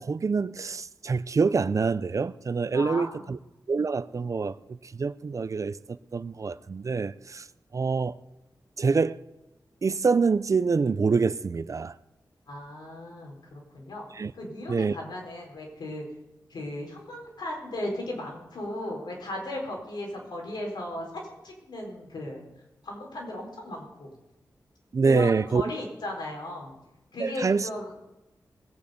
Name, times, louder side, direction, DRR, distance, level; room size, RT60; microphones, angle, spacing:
voice 1, 0.0-3.4 3.7-4.5 4.8-7.5 7.7-8.1 8.8-9.2 9.8-12.0 14.2-14.3 14.7-14.9 24.9-25.6 27.2-27.7, right 4 dB, 45° right, 0.5 m, -26 dB
voice 2, 2.7-3.3 12.5-14.1 14.3-16.1 16.5-21.1 21.4-22.4 22.8-24.1 25.0-26.7 27.1-27.9, left 1 dB, 80° left, 4.6 m, -36 dB
20.5 x 9.3 x 5.2 m
wide cardioid pair, 95°, 7 cm